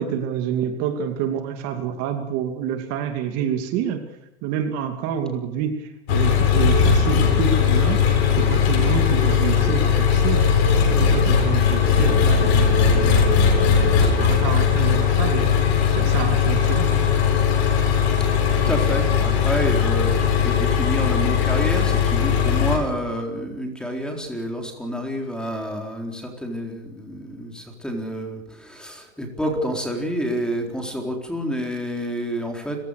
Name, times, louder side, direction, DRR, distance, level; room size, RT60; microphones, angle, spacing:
voice 1, 0.0-4.1 4.4-10.5 10.9-15.5 15.9-17.1, right 8 dB, 45° right, 6 dB, 2.7 m, -28 dB
Engine, 6.1-22.8, left 6 dB, 65° left, 7.8 m, -19 dB
voice 2, 18.5-32.8, equal, ahead, 2 dB, 4.1 m, -28 dB
29.5 x 16.5 x 6.7 m, 0.85 s
supercardioid pair, 145°, 33 cm